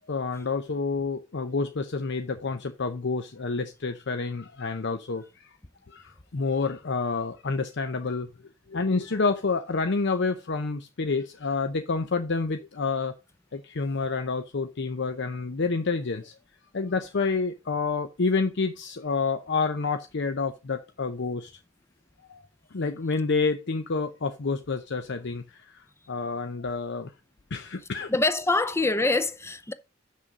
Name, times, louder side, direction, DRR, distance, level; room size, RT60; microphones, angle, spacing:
voice 1, 0.1-5.5 5.9-8.3 8.7-13.1 13.5-16.3 16.7-21.5 22.3-22.4 22.7-27.1 27.5-28.1, left 4 dB, 60° left, 0.7 m, -28 dB
voice 2, 28.1-29.7, left 2 dB, 15° left, 0.6 m, -24 dB
7.4 x 6.3 x 5.2 m
head